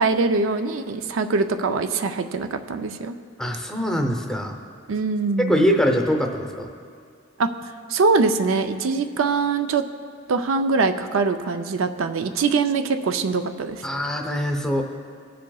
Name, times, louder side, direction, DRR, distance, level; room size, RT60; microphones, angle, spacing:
voice 1, 0.0-3.2 4.9-5.8 7.4-7.5 7.9-9.8 10.3-13.8, right 4 dB, 80° right, 8 dB, 0.5 m, -23 dB
voice 2, 3.4-4.6 5.5-6.7 13.8-14.8, equal, 5° left, 2 dB, 0.6 m, -23 dB
20.0 x 7.6 x 2.3 m, 2.2 s
head